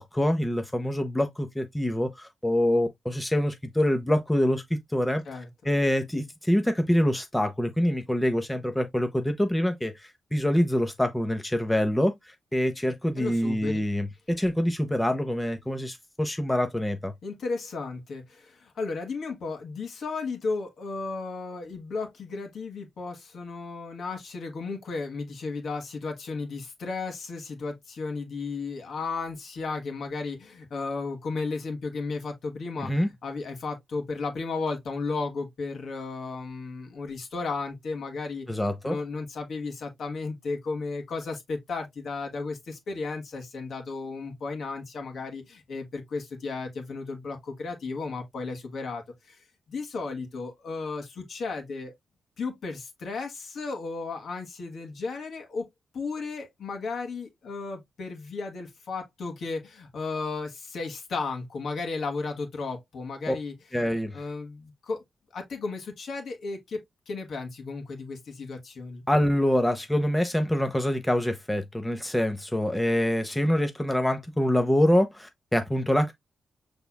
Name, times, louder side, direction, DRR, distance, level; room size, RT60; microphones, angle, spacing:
voice 1, 0.0-4.6 4.9-5.2 5.6-9.9 10.3-12.1 12.5-17.1 32.8-33.1 38.5-39.0 63.3-63.4 63.7-64.1 69.1-76.1, left 1 dB, 10° left, 0.7 m, -25 dB
voice 2, 13.2-13.8 17.2-32.9 33.2-38.5 38.8-49.4 49.7-51.9 52.4-55.7 55.9-63.5 64.1-65.0 65.3-66.8 67.1-69.0, left 4 dB, 70° left, 1.6 m, -34 dB
5.8 x 3.4 x 2.2 m
cardioid pair, 110°, 0 cm